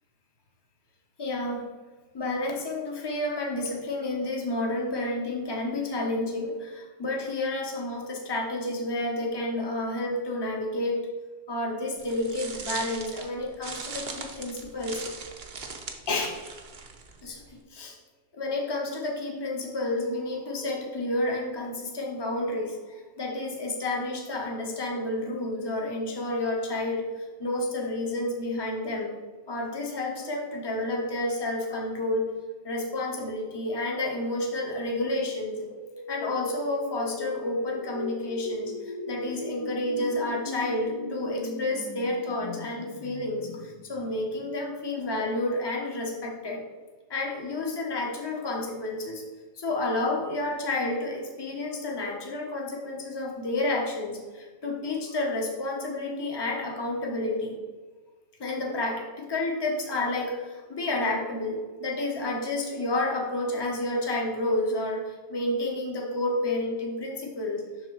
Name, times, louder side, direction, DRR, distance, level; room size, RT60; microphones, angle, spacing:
voice 1, 1.2-1.6 2.1-11.0 11.5-15.0 16.1-16.4 17.2-17.4 17.7-18.0 18.3-22.8 23.2-27.0 27.4-29.1 29.5-32.3 32.6-35.7 36.1-46.6 47.1-49.2 49.6-57.6 58.4-67.7, left 2 dB, 25° left, 0 dB, 0.8 m, -30 dB
sound 1, 12.0-17.6, right 4 dB, 50° right, 0.7 m, -40 dB
sound 2, 35.6-44.5, left 3 dB, 60° left, 0.3 m, -39 dB
6.2 x 3.7 x 4.6 m, 1.3 s
omnidirectional pair, 1.2 m